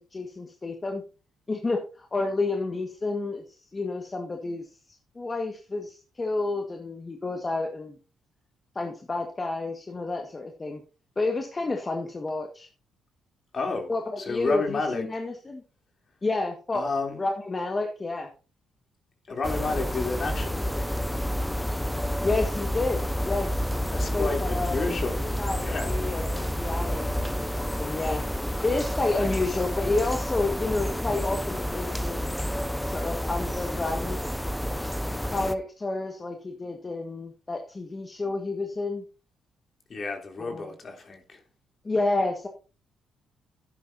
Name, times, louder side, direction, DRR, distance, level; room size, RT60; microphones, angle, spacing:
voice 1, 0.1-1.0 1.5-4.7 5.1-8.0 8.7-10.8 11.1-12.7 13.9-15.6 16.2-16.9 17.2-18.3 22.2-23.7 24.1-24.9 25.4-28.2 28.6-32.3 32.8-34.4 35.3-39.0 40.4-40.7 41.8-42.5, left 3 dB, 25° left, 1.7 m, -30 dB
voice 2, 13.5-15.1 16.7-17.2 19.3-21.0 23.9-26.0 29.1-29.6 39.9-41.4, left 3 dB, 45° left, 3.2 m, -32 dB
sound 1, 19.4-35.5, equal, 5° left, 0.8 m, -29 dB
12.0 x 10.0 x 2.7 m
cardioid pair, 90°, 0 cm